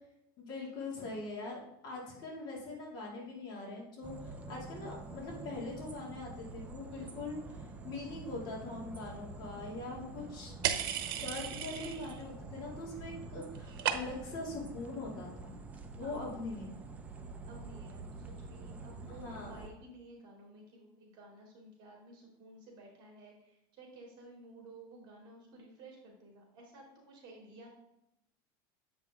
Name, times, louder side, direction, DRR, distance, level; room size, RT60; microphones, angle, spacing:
voice 1, 0.4-10.5 11.2-15.5 16.0-16.7 19.1-19.5, left 2 dB, 40° left, -3 dB, 2.4 m, -42 dB
sound 1, 4.0-19.7, right 3 dB, 10° right, 0.5 m, -47 dB
voice 2, 6.9-7.2 16.0-16.4 17.5-27.8, right 2 dB, 40° right, -2 dB, 2.8 m, -54 dB
sound 2, 10.6-12.2 12.5-13.1 13.3-14.4, right 10 dB, 85° right, 0.8 m, -35 dB
8.0 x 5.4 x 3.6 m, 0.86 s
supercardioid pair, 155°, 12 cm